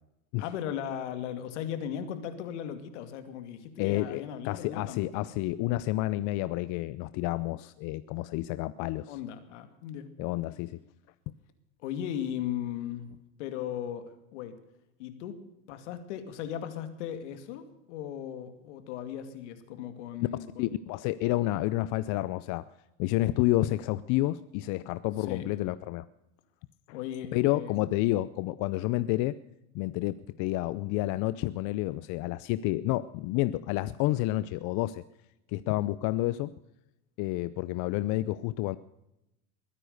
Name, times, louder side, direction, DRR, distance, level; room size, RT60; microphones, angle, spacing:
voice 1, 0.4-5.3 9.1-10.1 11.8-13.1 13.4-14.6 15.0-15.4 15.7-20.7 25.2-25.5 26.9-27.8, left 9 dB, 85° left, 9 dB, 2.5 m, -37 dB
voice 2, 3.8-9.2 10.2-10.8 20.6-22.6 23.0-26.1 26.9-27.0 27.3-29.4 29.7-35.0 35.5-36.5 37.2-38.8, left 17 dB, 55° left, 16 dB, 0.6 m, -29 dB
22.0 x 9.9 x 6.6 m, 0.90 s
supercardioid pair, 120°, 35 cm